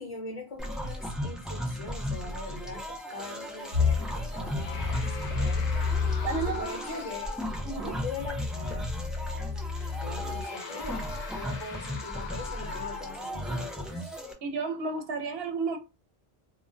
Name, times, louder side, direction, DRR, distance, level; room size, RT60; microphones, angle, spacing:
voice 1, 0.0-7.3 7.8-8.9 10.0-11.0 11.3-14.1, left 2 dB, 35° left, 0.8 m, -42 dB
sound 1, 0.6-14.3, equal, ahead, 0.3 m, -36 dB
sound 2, 3.6-4.0 4.5-7.7 8.1-8.2 9.7-13.4 14.1-14.3, left 6 dB, 65° left, 0.8 m, -42 dB
sound 3, 3.7-6.6 7.2-10.4, left 5 dB, 35° right, 0.8 m, -31 dB
voice 2, 6.2-6.7 7.6-8.0 14.4-15.8, right 4 dB, 75° right, 0.8 m, -32 dB
2.2 x 2.1 x 3.7 m
omnidirectional pair, 1.1 m